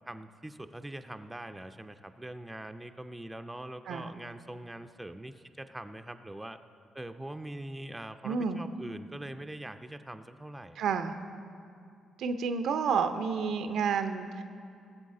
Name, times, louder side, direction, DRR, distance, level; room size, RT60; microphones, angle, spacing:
voice 1, 0.1-6.6 6.9-10.8, right 1 dB, 10° right, 9 dB, 0.6 m, -43 dB
voice 2, 8.2-8.6 10.8-11.2 12.2-14.4, right 6 dB, 60° right, 9 dB, 0.6 m, -30 dB
18.5 x 7.6 x 3.7 m, 2.4 s
figure-of-eight pair, 40°, 0 cm